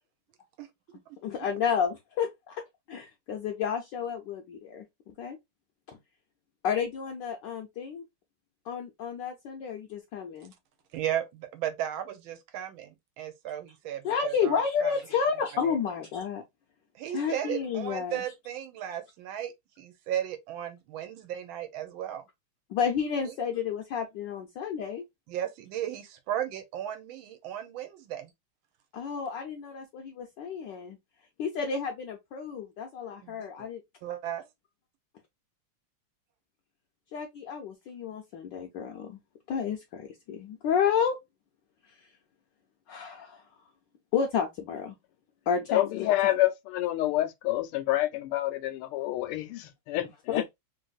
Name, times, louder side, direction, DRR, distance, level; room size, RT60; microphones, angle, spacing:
voice 1, 1.2-2.6 2.9-5.4 6.6-8.0 8.7-10.5 14.0-16.4 17.1-18.2 22.7-25.0 28.9-31.0 31.4-33.8 37.1-39.2 39.5-41.2 42.9-43.4 44.1-44.9 45.5-46.3 50.3-50.5, left 7 dB, 70° left, 1.1 m, -31 dB
voice 2, 10.9-14.9 17.0-19.5 19.8-22.2 25.3-28.3 33.2-33.5 34.0-34.4, right 11 dB, 75° right, 1.4 m, -35 dB
voice 3, 45.7-50.5, left 15 dB, 85° left, 1.5 m, -28 dB
3.4 x 2.6 x 2.3 m
omnidirectional pair, 2.3 m